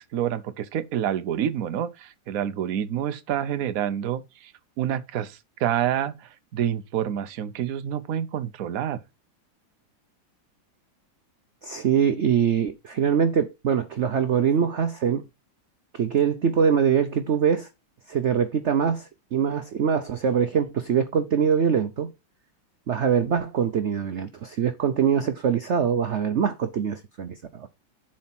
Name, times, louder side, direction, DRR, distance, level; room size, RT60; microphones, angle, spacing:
voice 1, 0.0-4.5 4.8-9.0, right 10 dB, 60° right, 1.0 m, -28 dB
voice 2, 11.6-15.2 15.9-17.7 18.1-22.1 22.9-27.7, right 7 dB, 75° right, 0.6 m, -23 dB
7.4 x 4.2 x 5.9 m
omnidirectional pair, 2.1 m